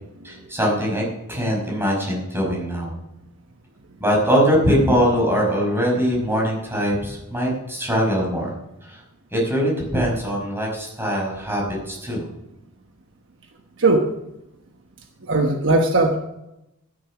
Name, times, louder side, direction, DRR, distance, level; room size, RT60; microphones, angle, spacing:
voice 1, 0.2-2.9 4.0-8.5 8.8-9.0 9.3-12.2, equal, 10° right, -3 dB, 5.4 m, -22 dB
voice 2, 13.8-14.1 15.2-16.2, right 2 dB, 60° right, 4 dB, 1.2 m, -19 dB
12.5 x 11.0 x 6.0 m, 0.89 s
head